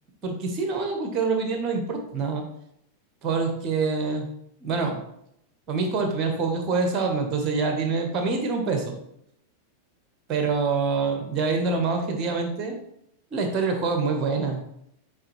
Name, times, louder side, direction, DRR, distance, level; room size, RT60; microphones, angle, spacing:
voice 1, 0.2-2.4 3.2-4.3 4.6-5.0 5.7-9.0 10.3-12.7 13.3-14.6, right 4 dB, 30° right, 4 dB, 1.4 m, -25 dB
8.6 x 4.0 x 3.4 m, 0.76 s
figure-of-eight pair, 90°, 0 cm